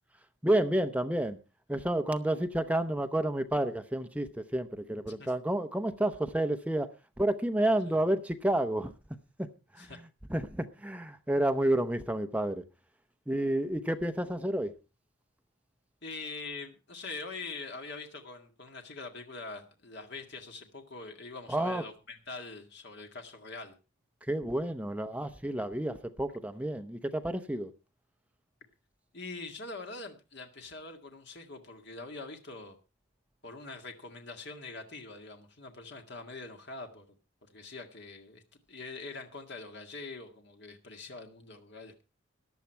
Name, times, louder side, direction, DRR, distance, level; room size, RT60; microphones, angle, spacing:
voice 1, 0.4-1.4 1.7-6.9 7.2-8.9 9.4-9.5 9.7-9.9 10.3-12.6 13.3-14.7 21.5-21.8 24.3-27.7, right 1 dB, 5° right, 0.7 m, -30 dB
voice 2, 16.0-23.7 29.1-32.8 33.4-37.1 37.5-38.4 38.7-42.0, left 3 dB, 55° left, 1.9 m, -44 dB
14.5 x 11.0 x 4.5 m
head